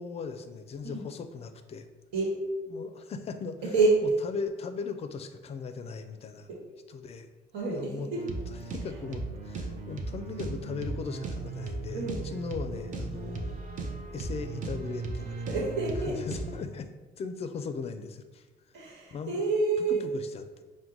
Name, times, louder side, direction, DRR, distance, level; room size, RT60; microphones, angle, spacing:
voice 1, 0.0-1.9 2.7-3.7 4.2-6.5 6.9-7.3 7.7-8.1 8.6-13.6 14.1-15.4 16.0-16.9 17.2-18.8 19.1-19.4 19.8-20.6, left 5 dB, 40° left, 8 dB, 0.4 m, -38 dB
voice 2, 3.6-4.2 6.5-6.6 7.5-8.2 8.8-8.9 11.9-12.2 15.4-16.2 18.7-20.0, right 3 dB, 85° right, -3 dB, 1.2 m, -28 dB
sound 1, 8.1-16.6, right 3 dB, 50° right, 0.6 m, -36 dB
4.4 x 2.1 x 3.8 m, 1.2 s
cardioid pair, 110°, 17 cm